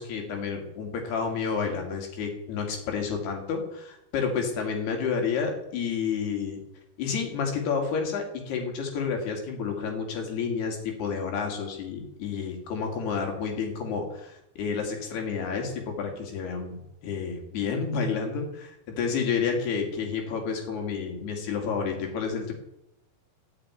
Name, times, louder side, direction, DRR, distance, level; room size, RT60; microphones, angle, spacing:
voice 1, 0.0-6.6 7.0-16.8 17.0-22.5, left 6 dB, 70° left, 2 dB, 4.4 m, -30 dB
13.5 x 5.9 x 9.7 m, 0.84 s
omnidirectional pair, 4.9 m